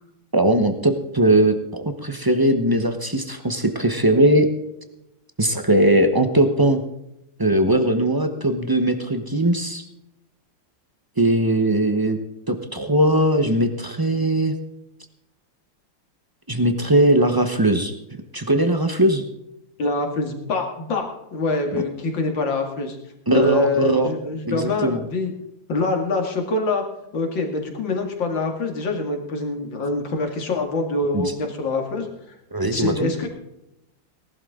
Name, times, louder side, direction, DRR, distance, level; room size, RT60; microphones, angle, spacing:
voice 1, 0.3-4.5 5.4-6.8 7.4-9.8 11.2-12.2 12.5-14.5 16.5-17.9 18.3-19.2 21.7-21.8 23.3-24.1 24.5-25.0 31.1-31.3 32.5-33.1, right 1 dB, 30° right, 7 dB, 0.4 m, -19 dB
voice 2, 19.8-23.0 23.3-25.3 25.7-26.8 27.1-32.1 32.7-33.3, left 3 dB, 70° left, 3 dB, 2.9 m, -25 dB
18.5 x 12.0 x 3.7 m, 0.84 s
omnidirectional pair, 2.1 m